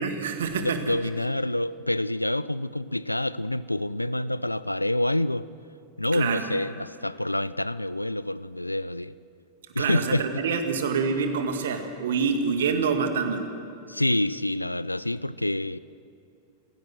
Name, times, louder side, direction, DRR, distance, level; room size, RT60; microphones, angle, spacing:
voice 1, 0.0-0.9 6.1-6.4 9.8-13.5, right 5 dB, 60° right, 6 dB, 2.1 m, -26 dB
voice 2, 0.6-5.5 6.0-9.1 9.7-10.2 13.9-15.8, left 1 dB, 85° left, 18 dB, 0.5 m, -27 dB
28.0 x 16.5 x 6.3 m, 2.7 s
figure-of-eight pair, 90°, 0 cm